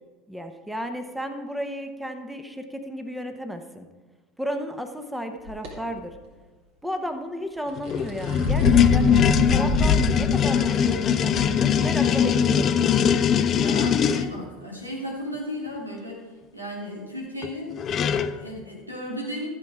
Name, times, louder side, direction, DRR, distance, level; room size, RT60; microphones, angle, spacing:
voice 1, 0.3-3.9 4.4-6.1 6.8-9.1 9.5-12.9, equal, 5° right, 6 dB, 0.9 m, -33 dB
sound 1, 5.5-5.7 7.7-10.1 10.5-10.6 11.4-11.5, left 2 dB, 55° right, 3.0 m, -25 dB
sound 2, 7.8-14.3 17.4-17.5 17.8-18.4, left 8 dB, 35° left, 0.5 m, -21 dB
voice 2, 13.5-17.7 18.1-19.5, equal, 90° right, -2 dB, 2.2 m, -35 dB
13.5 x 7.3 x 4.7 m, 1.4 s
figure-of-eight pair, 70°, 0 cm